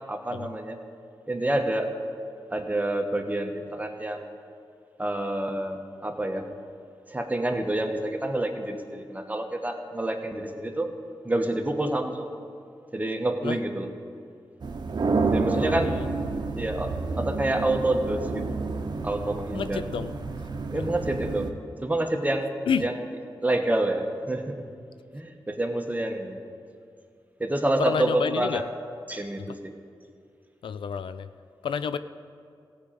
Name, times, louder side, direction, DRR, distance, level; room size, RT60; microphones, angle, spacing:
voice 1, 0.1-0.8 1.3-1.9 2.5-4.2 5.0-6.5 7.1-10.9 11.2-12.3 12.9-13.9 15.3-16.0 16.5-16.9 17.2-18.4 19.0-19.8 20.7-21.5 21.8-22.5 22.8-23.0 23.4-24.6 25.1-26.4 27.4-28.7 29.1-29.6, right 1 dB, 20° right, 4 dB, 1.2 m, -28 dB
sound 1, 14.6-21.5, right 3 dB, 55° right, 0.9 m, -29 dB
voice 2, 15.5-16.1 19.5-20.1 20.7-20.9 22.7-22.9 27.8-28.7 29.4-29.6 30.6-31.3 31.6-32.0, left 7 dB, 85° left, 13 dB, 0.4 m, -30 dB
15.0 x 5.1 x 8.7 m, 2.3 s
cardioid pair, 60°, 9 cm